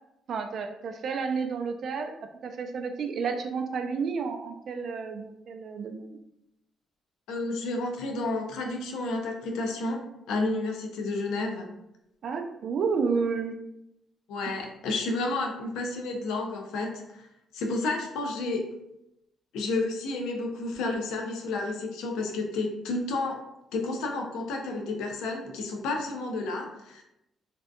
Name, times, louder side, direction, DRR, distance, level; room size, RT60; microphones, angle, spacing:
voice 1, 0.3-2.1 2.4-6.2 12.2-13.5, right 5 dB, 60° right, 5 dB, 0.3 m, -31 dB
voice 2, 7.3-11.7 14.3-17.3 17.5-18.6 19.5-23.4 23.7-27.0, left 2 dB, 90° left, 2 dB, 0.4 m, -31 dB
2.6 x 2.2 x 2.2 m, 0.84 s
cardioid pair, 90°, 0 cm